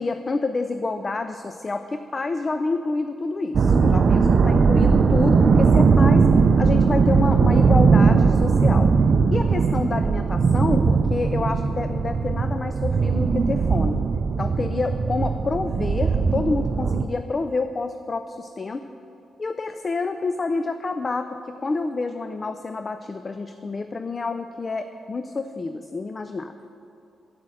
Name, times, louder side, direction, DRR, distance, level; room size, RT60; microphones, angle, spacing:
voice 1, 0.0-6.3 6.6-9.0 9.3-14.1 14.4-18.9 19.4-26.5, left 3 dB, 30° left, 9 dB, 0.4 m, -28 dB
sound 1, 3.5-17.0, right 5 dB, 50° right, 0.5 m, -19 dB
8.6 x 8.5 x 6.3 m, 2.8 s
cardioid pair, 105°, 0 cm